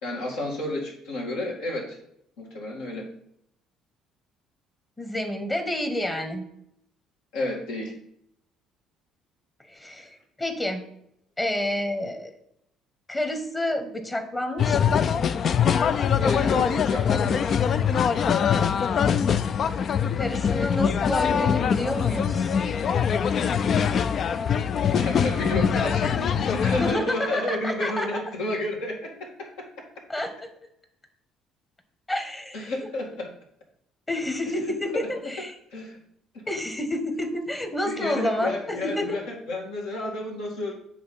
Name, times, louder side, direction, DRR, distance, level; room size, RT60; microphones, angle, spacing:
voice 1, 0.0-2.0 2.4-3.1 7.3-7.9 16.2-17.6 24.9-29.7 32.5-33.3 35.0-35.1 35.7-36.0 37.9-40.7, left 1 dB, 75° left, -2 dB, 1.9 m, -31 dB
voice 2, 5.0-6.4 9.6-10.8 11.4-12.3 13.1-15.1 20.2-22.5 26.8-28.2 30.1-30.5 32.1-32.9 34.1-35.5 36.5-39.2, left 1 dB, 20° left, 7 dB, 1.2 m, -29 dB
sound 1, 14.6-27.0, left 7 dB, 50° left, 0.3 m, -23 dB
7.9 x 3.5 x 5.4 m, 0.74 s
hypercardioid pair, 55°, 0 cm